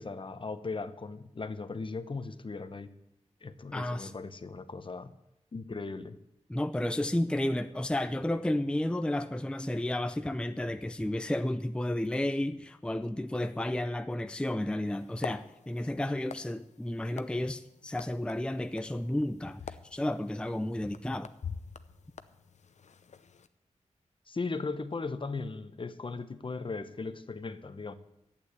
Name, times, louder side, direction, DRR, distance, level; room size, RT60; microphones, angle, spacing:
voice 1, 0.0-2.9 3.4-5.1 5.5-6.2 24.3-27.9, left 3 dB, 45° left, 0.9 m, -38 dB
voice 2, 3.7-4.1 6.5-21.3, left 1 dB, 10° left, 0.5 m, -32 dB
sound 1, 14.9-23.5, left 6 dB, 75° left, 0.7 m, -47 dB
11.5 x 8.7 x 9.7 m
wide cardioid pair, 80°, 12 cm